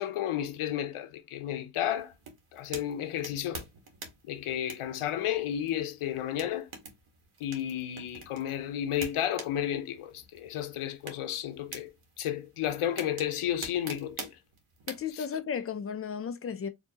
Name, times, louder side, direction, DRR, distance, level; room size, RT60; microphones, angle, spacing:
voice 1, 0.0-2.1 2.5-3.6 4.2-6.7 7.4-14.4 15.1-15.3, left 11 dB, 80° left, 0.7 m, -32 dB
sound 1, 1.8-15.1, right 4 dB, 75° right, 1.4 m, -47 dB
voice 2, 14.9-16.7, left 7 dB, 30° left, 0.4 m, -34 dB
4.5 x 2.8 x 2.8 m
wide cardioid pair, 160°, 50 cm